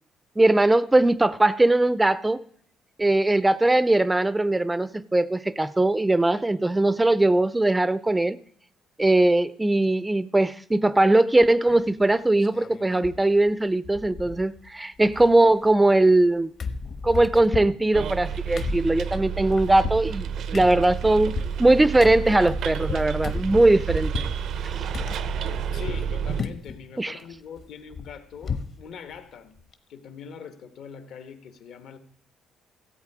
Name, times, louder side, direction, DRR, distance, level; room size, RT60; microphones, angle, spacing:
voice 1, 0.4-2.4 3.0-8.4 9.0-16.5 17.0-24.2 27.0-27.2, right 2 dB, 10° right, 0.4 m, -20 dB
sound 1, 11.7-12.0 12.4-13.2 13.5-13.6 13.8-14.7 15.0-16.3 16.6-24.4 24.9-26.1 26.4-26.8 27.2-28.8 29.1-29.2 29.6-29.7, left 5 dB, 50° left, 1.0 m, -35 dB
Bus, 17.9-26.4, right 7 dB, 70° right, 0.6 m, -30 dB
voice 2, 25.7-29.6 29.9-32.0, left 6 dB, 70° left, 1.2 m, -42 dB
14.0 x 8.0 x 4.8 m
cardioid pair, 100°, 0 cm